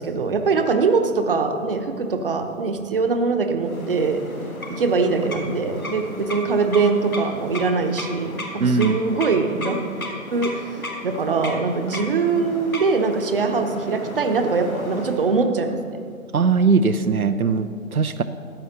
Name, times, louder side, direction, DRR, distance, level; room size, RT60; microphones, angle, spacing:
voice 1, 0.0-4.2 4.7-9.8 10.3-10.5 11.0-15.8, right 4 dB, 40° right, 6 dB, 0.9 m, -22 dB
sound 1, 3.6-15.4, left 1 dB, 80° left, 2.0 m, -34 dB
voice 2, 8.6-9.0 16.3-18.2, right 4 dB, 85° right, 10 dB, 0.7 m, -20 dB
14.5 x 9.2 x 4.0 m, 2.3 s
figure-of-eight pair, 145°, 42 cm